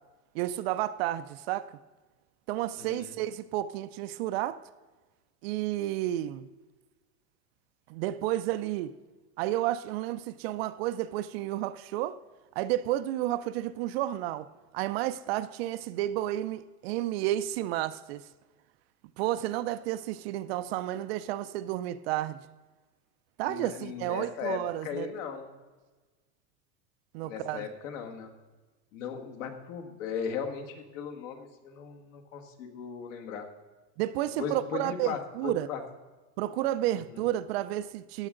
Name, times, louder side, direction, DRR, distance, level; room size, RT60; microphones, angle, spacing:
voice 1, 0.3-1.8 2.5-4.6 5.4-6.5 7.9-8.9 9.4-12.2 12.6-14.5 14.7-18.2 19.2-22.4 23.4-25.1 27.1-27.6 34.0-35.7 36.4-38.3, right 14 dB, 50° right, 13 dB, 0.5 m, -31 dB
voice 2, 2.8-3.2 23.4-25.5 27.2-28.3 28.9-33.5 34.4-35.8 36.9-37.2, left 7 dB, 65° left, 5 dB, 1.9 m, -37 dB
15.5 x 9.7 x 3.8 m, 1.3 s
supercardioid pair, 165°, 41 cm